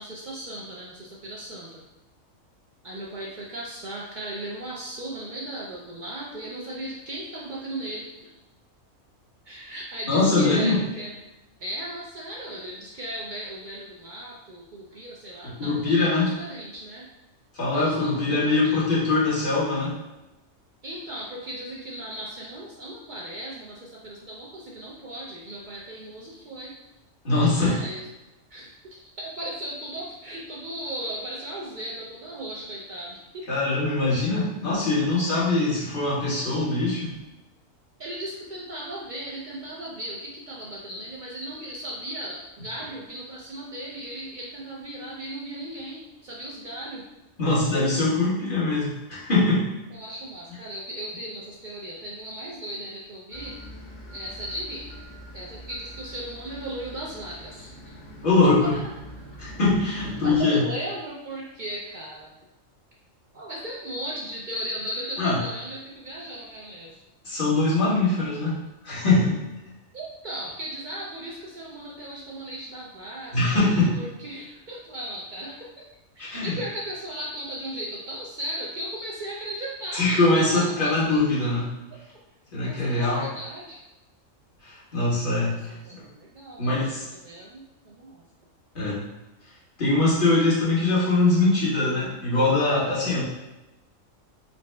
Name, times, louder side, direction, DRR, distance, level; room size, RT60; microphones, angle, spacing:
voice 1, 0.0-1.8 2.8-8.3 9.4-11.1 11.6-17.1 17.7-18.9 20.8-26.7 27.3-28.0 28.5-33.4 38.0-47.0 49.9-53.6 54.1-54.9 55.3-57.9 58.7-58.8 59.9-62.3 63.3-67.0 69.9-73.6 74.0-75.6 76.2-80.1 80.5-80.9 82.5-83.8 85.4-88.2, right 1 dB, 70° right, -4 dB, 0.4 m, -37 dB
voice 2, 10.1-10.8 15.4-16.3 17.6-20.0 27.2-27.9 33.5-37.1 47.4-49.7 58.2-58.7 59.4-60.6 65.2-65.4 67.2-69.5 73.3-74.0 76.2-76.6 79.9-81.7 82.5-83.2 84.6-85.7 86.6-87.0 88.7-89.0 89.8-93.2, left 2 dB, 40° left, -8 dB, 1.4 m, -22 dB
sound 1, 53.3-60.4, equal, 85° left, 1.2 m, -44 dB
4.2 x 2.1 x 3.2 m, 0.99 s
omnidirectional pair, 1.4 m